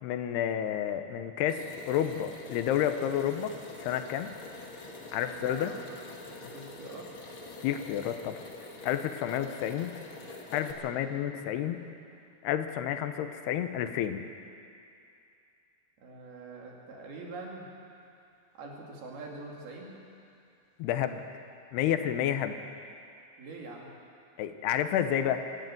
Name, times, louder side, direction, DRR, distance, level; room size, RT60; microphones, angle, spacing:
voice 1, 0.0-3.5 3.8-4.3 5.1-5.7 7.6-8.4 8.8-9.9 10.5-11.9 12.4-14.3 20.8-21.2 21.7-22.6 24.4-25.4, left 10 dB, 90° left, 8 dB, 3.0 m, -30 dB
sound 1, 1.5-10.7, left 3 dB, 45° left, 1.9 m, -45 dB
voice 2, 5.3-5.8 6.4-7.1 11.0-11.4 16.0-17.7 18.6-20.0 23.4-24.0, right 3 dB, 70° right, -2 dB, 4.6 m, -44 dB
24.5 x 11.5 x 9.2 m, 2.5 s
omnidirectional pair, 4.7 m